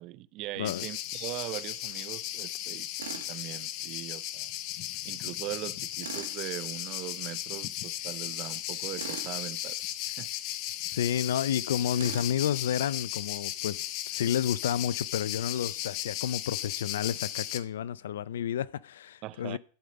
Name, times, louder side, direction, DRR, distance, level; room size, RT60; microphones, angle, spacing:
voice 1, 0.0-4.5 5.0-9.8 10.2-10.3 19.2-19.6, right 16 dB, 45° right, 0.6 m, -40 dB
sound 1, 0.6-17.6, left 14 dB, 50° left, 0.9 m, -36 dB
Tools, 3.0-3.3 6.0-6.4 8.9-9.4 11.9-12.4, right 6 dB, 85° right, 1.6 m, -40 dB
voice 2, 10.9-19.6, left 9 dB, 75° left, 0.5 m, -31 dB
12.0 x 5.1 x 7.9 m
hypercardioid pair, 110°, 0 cm